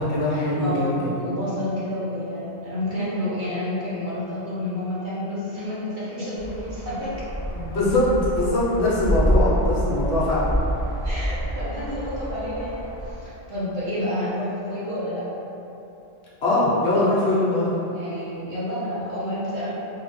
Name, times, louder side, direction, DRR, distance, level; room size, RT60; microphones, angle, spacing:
voice 1, 0.0-1.3 7.5-10.5 16.4-17.8, left 1 dB, 65° left, -8 dB, 1.0 m, -22 dB
voice 2, 0.6-7.1 11.0-15.2 17.9-19.7, left 1 dB, 45° right, -10 dB, 0.8 m, -29 dB
sound 1, 6.4-13.1, equal, 5° left, 1.1 m, -27 dB
3.1 x 2.4 x 4.0 m, 2.9 s
omnidirectional pair, 1.3 m